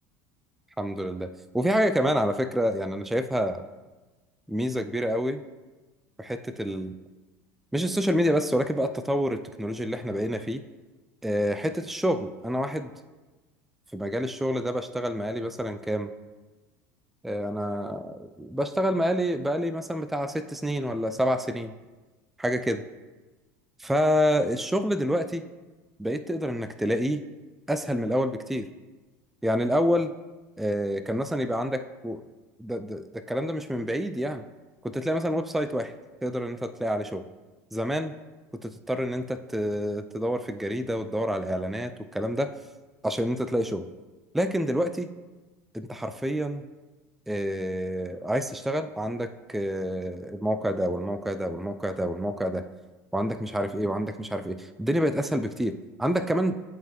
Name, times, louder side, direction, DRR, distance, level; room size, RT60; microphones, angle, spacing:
voice 1, 0.8-1.3 1.5-3.7 4.5-5.4 6.2-6.9 7.7-10.6 11.2-12.9 13.9-16.1 17.2-21.7 22.4-22.8 23.8-25.4 26.0-27.2 27.7-28.7 29.4-30.1 30.6-32.2 32.6-34.4 34.8-35.9 36.2-37.2 37.7-38.1 38.6-42.5 43.0-43.9 44.3-45.1 45.7-46.7 47.3-52.6 53.1-56.6, equal, ahead, 10 dB, 0.3 m, -28 dB
10.5 x 3.7 x 3.1 m, 1.2 s
hypercardioid pair, 90°, 8 cm